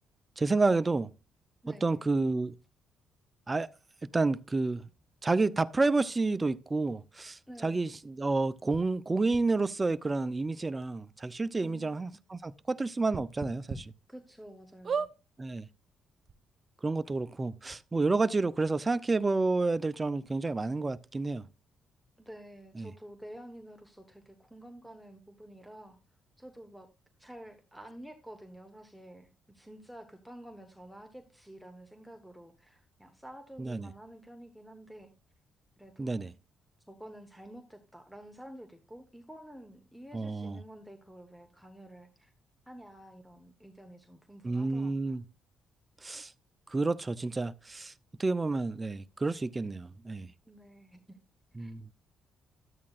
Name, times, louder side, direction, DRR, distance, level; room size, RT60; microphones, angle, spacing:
voice 1, 0.4-1.1 1.8-2.5 3.5-3.7 4.1-4.8 5.2-13.9 15.4-15.6 16.8-21.4 22.8-22.9 33.6-33.9 36.0-36.3 40.1-40.6 44.4-45.2 46.0-46.3 46.7-47.9 48.2-50.3 51.6-51.9, right 3 dB, 25° right, 0.5 m, -30 dB
voice 2, 1.6-2.1 7.5-7.8 11.6-12.2 14.1-15.1 22.2-26.0 26.4-26.9 27.2-35.1 35.8-36.3 36.9-42.3 42.7-45.2 50.5-51.2 51.6-51.7, right 1 dB, ahead, 1.2 m, -50 dB
sound 1, 8.7-8.8 9.3-9.4 10.4-10.5 10.8-10.9 11.3-11.4 13.1-13.8 14.3-14.4 14.8-15.1 16.0-16.1 16.2-16.3, right 6 dB, 45° right, 0.8 m, -34 dB
12.5 x 8.4 x 2.4 m
cardioid pair, 90°, 0 cm